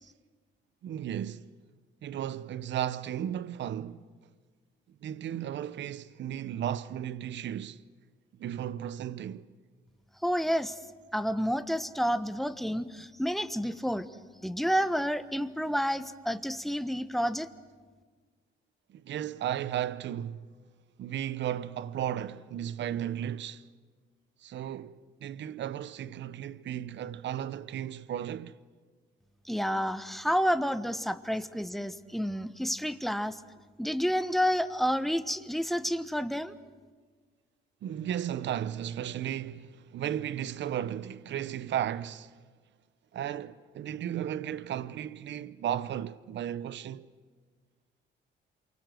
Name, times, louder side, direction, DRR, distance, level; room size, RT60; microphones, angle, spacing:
voice 1, 0.8-1.5 2.0-4.1 5.0-7.8 8.4-9.5 18.9-20.5 21.0-23.7 24.4-28.6 37.8-42.4 43.1-47.1, right 10 dB, 65° right, 0.8 m, -35 dB
voice 2, 10.2-10.8 11.1-14.1 14.4-17.5 29.5-33.4 33.8-36.5, equal, ahead, 1.2 m, -29 dB
28.0 x 24.0 x 7.8 m
cardioid pair, 90°, 20 cm